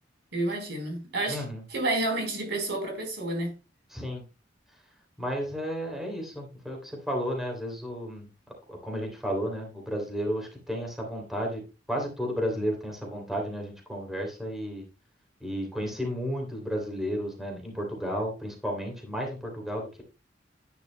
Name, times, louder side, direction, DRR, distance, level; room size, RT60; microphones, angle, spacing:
voice 1, 0.3-3.5, right 2 dB, 65° right, 4.2 m, -30 dB
voice 2, 1.3-1.6 3.9-4.2 5.2-8.3 8.7-11.6 11.9-14.8 15.4-20.0, equal, ahead, 3.0 m, -32 dB
11.0 x 10.0 x 2.2 m
head